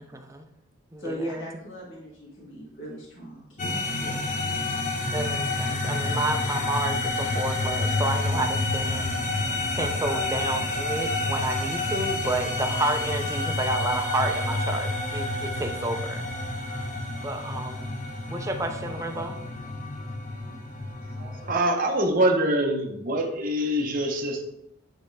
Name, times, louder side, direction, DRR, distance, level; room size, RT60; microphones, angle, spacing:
voice 1, 0.1-0.4 0.9-1.0 5.1-9.1 9.7-16.3 17.2-17.9 18.3-19.4, right 2 dB, 15° right, 5 dB, 0.5 m, -30 dB
voice 2, 1.0-4.2, equal, 65° left, -5 dB, 2.0 m, -38 dB
sound 1, 3.6-21.6, left 2 dB, 40° left, 0.9 m, -29 dB
voice 3, 21.2-24.4, right 1 dB, 40° right, 1 dB, 1.0 m, -25 dB
9.8 x 3.4 x 3.3 m, 0.82 s
head